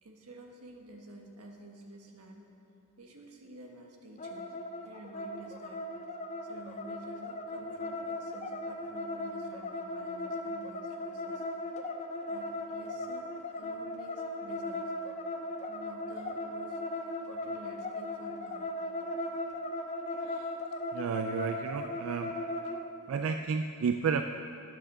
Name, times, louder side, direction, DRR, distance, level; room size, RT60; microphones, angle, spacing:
voice 1, 0.0-2.5 3.0-4.5 4.8-5.9 6.4-11.4 12.3-14.9 15.7-16.8 17.3-18.7, right 2 dB, 90° right, 2 dB, 1.3 m, -51 dB
sound 1, 4.2-22.8, left 2 dB, 30° left, 0.5 m, -37 dB
voice 2, 20.9-22.4 23.1-24.3, right 6 dB, 65° right, 7 dB, 0.3 m, -32 dB
10.0 x 6.6 x 6.5 m, 2.7 s
head